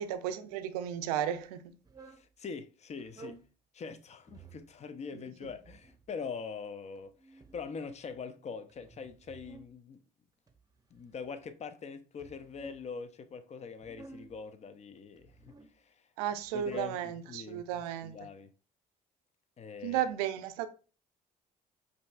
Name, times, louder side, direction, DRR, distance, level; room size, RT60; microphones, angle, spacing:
voice 1, 0.0-1.7 5.2-5.3 16.2-18.2 19.8-20.7, right 10 dB, 85° right, 0.4 m, -34 dB
sound 1, 1.8-2.3 3.0-3.5 4.2-4.7 5.4-6.1 6.9-8.2 8.7-9.7 10.5-11.4 12.1-12.8 13.7-14.4 15.1-15.7 16.4-16.8, right 3 dB, 20° right, 0.8 m, -53 dB
voice 2, 2.0-3.4 3.7-10.0 10.9-16.1 16.5-18.5 19.6-20.0, left 5 dB, 35° left, 0.6 m, -43 dB
5.2 x 2.7 x 2.3 m
hypercardioid pair, 60°, 19 cm